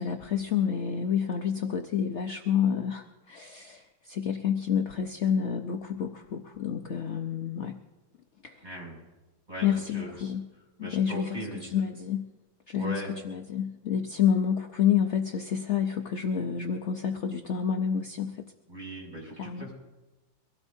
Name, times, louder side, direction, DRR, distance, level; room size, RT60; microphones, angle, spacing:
voice 1, 0.0-7.8 8.4-8.6 9.6-10.4 10.9-11.4 11.7-12.2 12.7-18.4 19.4-19.6, left 8 dB, 65° left, 4 dB, 0.7 m, -29 dB
voice 2, 8.6-9.0 9.5-10.3 10.8-11.7 12.7-13.1 18.7-19.7, right 1 dB, 20° right, -3 dB, 6.9 m, -39 dB
24.0 x 17.0 x 2.7 m, 1.1 s
omnidirectional pair, 2.1 m